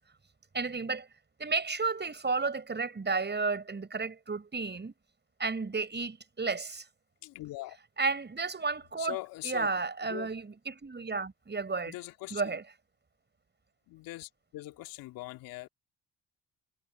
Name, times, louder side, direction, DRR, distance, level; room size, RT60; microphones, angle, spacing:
voice 1, 0.5-1.1 1.4-4.9 5.4-6.8 8.0-9.2 9.4-12.0 12.3-12.6, right 4 dB, 30° right, 7.1 m, -32 dB
voice 2, 7.2-7.8 9.0-9.7 10.1-10.3 11.9-12.5 13.9-15.7, left 18 dB, 70° left, 2.6 m, -41 dB
hypercardioid pair, 50°, 36 cm